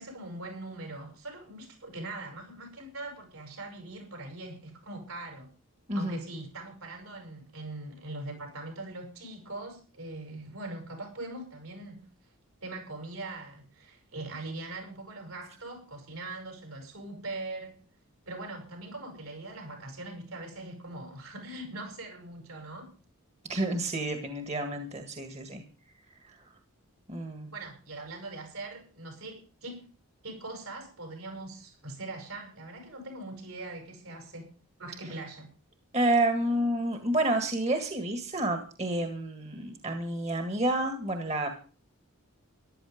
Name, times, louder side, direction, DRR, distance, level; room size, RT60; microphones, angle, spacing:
voice 1, 0.0-5.5 5.9-12.1 12.6-17.7 18.3-22.9 27.5-29.9 30.2-34.5 34.8-35.5, right 2 dB, 75° right, 3 dB, 7.8 m, -41 dB
voice 2, 5.9-6.2 23.5-25.6 26.2-26.4 27.1-27.5 35.9-41.5, right 1 dB, 30° right, 6 dB, 1.7 m, -29 dB
14.5 x 12.0 x 5.2 m, 0.38 s
head